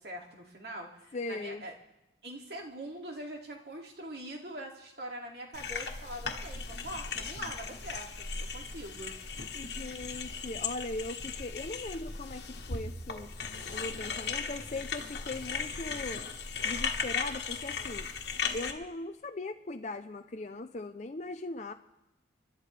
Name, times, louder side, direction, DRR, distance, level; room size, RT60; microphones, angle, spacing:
voice 1, 0.0-1.7 2.2-10.1, right 1 dB, 60° right, 0 dB, 2.5 m, -43 dB
voice 2, 1.1-1.6 9.5-13.3 13.7-16.2 16.6-18.1 18.5-21.7, left 2 dB, 40° left, 6 dB, 0.5 m, -39 dB
sound 1, 5.5-18.7, left 5 dB, 65° left, 1.4 m, -37 dB
30.0 x 12.5 x 3.4 m, 0.92 s
head